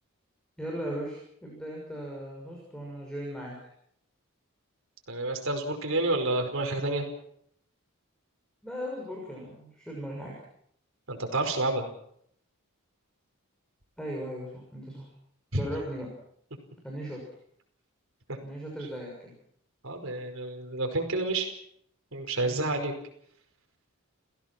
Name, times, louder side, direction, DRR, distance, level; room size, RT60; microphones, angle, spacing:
voice 1, 0.6-3.5 8.6-10.4 14.0-15.1 15.5-16.1 16.8-17.2 18.4-19.3 22.4-22.7, equal, 5° left, -2 dB, 6.5 m, -37 dB
voice 2, 5.1-7.0 11.1-11.9 15.5-15.6 19.8-21.5 22.1-22.9, right 2 dB, 65° right, 4 dB, 5.2 m, -29 dB
30.0 x 16.5 x 6.1 m, 0.69 s
head